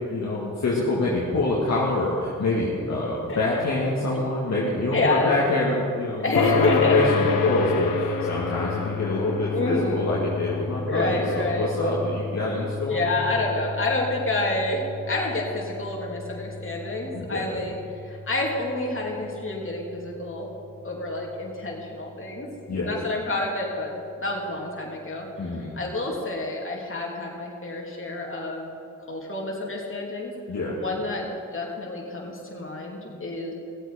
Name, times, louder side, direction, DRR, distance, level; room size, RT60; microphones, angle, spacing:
voice 1, 0.1-13.1 17.1-17.5 22.7-22.9 25.4-25.8 30.5-30.8, left 2 dB, 55° left, -5 dB, 2.1 m, -26 dB
voice 2, 4.9-5.4 6.2-7.0 9.5-10.0 10.9-11.7 12.9-17.7 18.0-20.5 20.8-22.5 22.8-28.7 29.1-30.3 30.8-33.5, left 2 dB, 40° left, -2 dB, 3.2 m, -28 dB
sound 1, 6.4-21.3, left 4 dB, 80° left, 1.1 m, -30 dB
17.5 x 8.0 x 5.1 m, 2.6 s
supercardioid pair, 45°, 33 cm